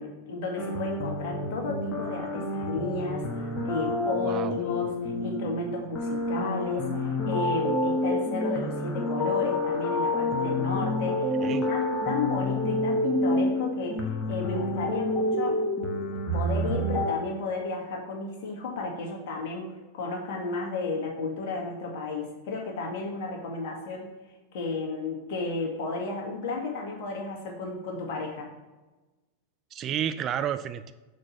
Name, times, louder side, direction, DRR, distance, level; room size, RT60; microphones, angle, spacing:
voice 1, 0.0-15.6 16.3-24.1 24.5-28.5, left 3 dB, 50° left, 0 dB, 1.8 m, -33 dB
sound 1, 0.6-17.1, left 1 dB, 20° left, 1.4 m, -28 dB
voice 2, 4.2-4.6 11.4-11.7 29.7-30.9, right 9 dB, 30° right, 12 dB, 0.3 m, -31 dB
6.3 x 4.3 x 5.8 m, 1.1 s
figure-of-eight pair, 90°, 0 cm